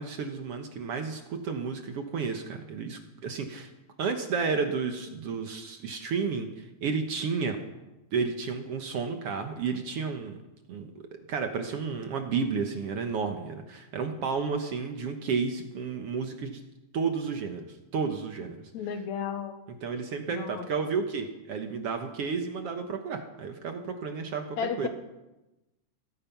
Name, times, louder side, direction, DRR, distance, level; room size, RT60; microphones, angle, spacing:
voice 1, 0.0-3.7 4.0-7.6 8.1-10.4 10.7-10.9 11.3-16.6 16.9-18.7 19.8-24.9, right 5 dB, 60° right, 5 dB, 1.8 m, -32 dB
voice 2, 18.7-19.6 20.3-20.7 24.6-24.9, left 7 dB, 70° left, 9 dB, 2.2 m, -33 dB
17.5 x 13.5 x 5.8 m, 1.0 s
omnidirectional pair, 3.6 m